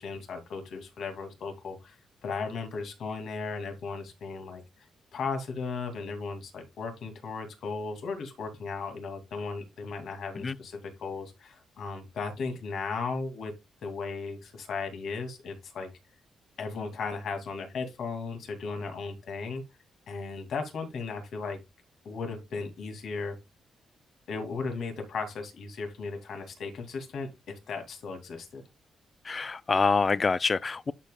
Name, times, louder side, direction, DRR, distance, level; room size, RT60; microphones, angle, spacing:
voice 1, 0.0-2.0 2.2-13.5 13.8-15.9 16.6-19.6 20.1-21.6 22.0-23.4 24.3-28.6, left 4 dB, 70° left, 2.3 m, -36 dB
voice 2, 29.3-30.9, left 4 dB, 30° left, 0.4 m, -26 dB
11.0 x 5.3 x 2.2 m
cardioid pair, 115°, 0 cm